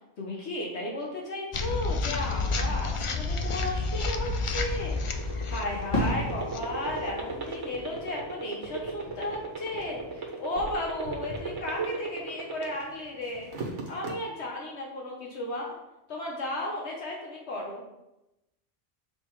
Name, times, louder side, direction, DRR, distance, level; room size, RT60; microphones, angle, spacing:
voice 1, 0.2-13.5 13.9-15.7 16.1-17.8, left 1 dB, 70° left, -2 dB, 1.3 m, -34 dB
sound 1, 1.5-7.7, left 3 dB, 55° left, 0.3 m, -30 dB
sound 2, 4.7-13.0 13.3-14.1, right 5 dB, 85° right, 1.5 m, -35 dB
Fireworks, 5.9-10.3 10.5-11.3, left 1 dB, 35° left, 1.7 m, -36 dB
7.0 x 3.8 x 4.6 m, 0.93 s
omnidirectional pair, 1.2 m